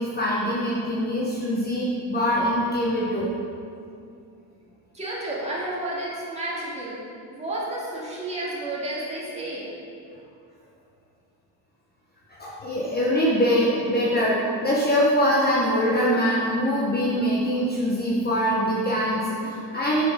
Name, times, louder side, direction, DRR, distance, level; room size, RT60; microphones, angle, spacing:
voice 1, 0.0-3.3 12.4-20.0, equal, 20° left, -5 dB, 1.0 m, -23 dB
voice 2, 4.9-7.0 7.3-9.7, right 1 dB, 15° right, -6 dB, 2.2 m, -31 dB
8.4 x 5.8 x 5.2 m, 2.5 s
cardioid pair, 140°, 44 cm